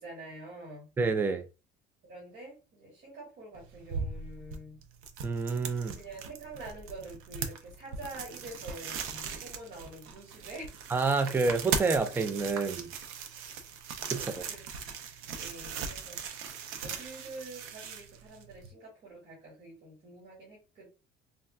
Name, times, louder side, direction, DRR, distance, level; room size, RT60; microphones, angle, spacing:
voice 1, 0.0-0.9 2.1-4.8 6.0-10.7 14.1-14.6 15.3-16.5 16.8-20.9, right 2 dB, 50° right, 1.5 m, -46 dB
voice 2, 1.0-1.4 5.2-6.0 10.9-12.9 14.1-14.4, right 4 dB, 10° right, 0.3 m, -28 dB
sound 1, 3.5-18.7, right 6 dB, 80° right, 0.5 m, -39 dB
3.5 x 2.2 x 2.3 m
cardioid pair, 130°, 21 cm